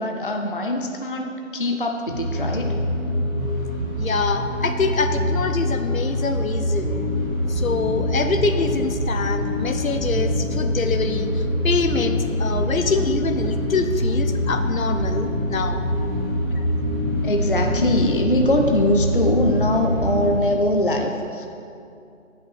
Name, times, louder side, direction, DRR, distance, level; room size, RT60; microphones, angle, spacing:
voice 1, 0.0-2.7 16.6-16.7 17.2-21.5, left 1 dB, 45° left, 2 dB, 0.4 m, -22 dB
sound 1, 2.1-20.4, equal, 20° right, 1.4 m, -24 dB
voice 2, 4.0-7.0 7.5-15.8, left 4 dB, 85° left, 8 dB, 0.8 m, -25 dB
9.0 x 5.4 x 4.6 m, 2.6 s
figure-of-eight pair, 170°, 40 cm